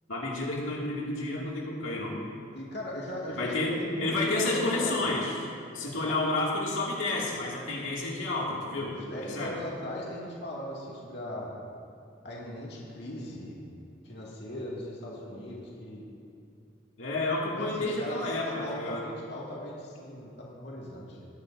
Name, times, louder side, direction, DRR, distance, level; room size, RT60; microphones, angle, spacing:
voice 1, 0.1-2.2 3.4-3.7 4.0-5.4 5.7-9.0 9.4-9.6 17.0-19.0, left 2 dB, 85° left, -4 dB, 2.2 m, -30 dB
voice 2, 2.5-5.1 5.8-6.2 8.9-11.6 12.2-13.6 14.0-16.0 17.5-21.3, left 1 dB, 60° left, -4 dB, 2.1 m, -39 dB
21.5 x 11.0 x 2.6 m, 2.6 s
head